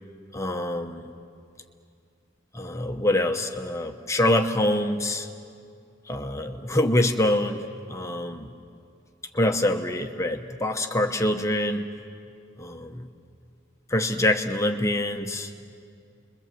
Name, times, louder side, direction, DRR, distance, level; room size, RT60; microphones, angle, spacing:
voice 1, 0.3-1.1 2.5-5.3 6.1-7.6 7.9-8.5 9.3-11.8 12.6-13.1 13.9-15.5, left 1 dB, 15° left, 5 dB, 0.9 m, -25 dB
30.0 x 22.0 x 7.6 m, 2.4 s
head